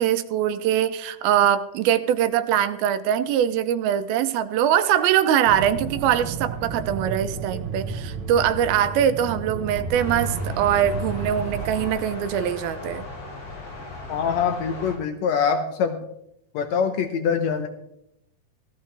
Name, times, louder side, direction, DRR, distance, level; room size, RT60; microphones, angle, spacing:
voice 1, 0.0-13.0, right 10 dB, 80° right, 11 dB, 2.6 m, -22 dB
sound 1, 5.4-11.9, right 4 dB, 65° right, 2.0 m, -32 dB
sound 2, 9.9-15.0, left 3 dB, 50° left, 5.3 m, -37 dB
voice 2, 14.1-16.0 16.5-17.7, left 6 dB, 85° left, 6 dB, 1.5 m, -24 dB
17.0 x 14.5 x 3.3 m, 0.78 s
omnidirectional pair, 4.3 m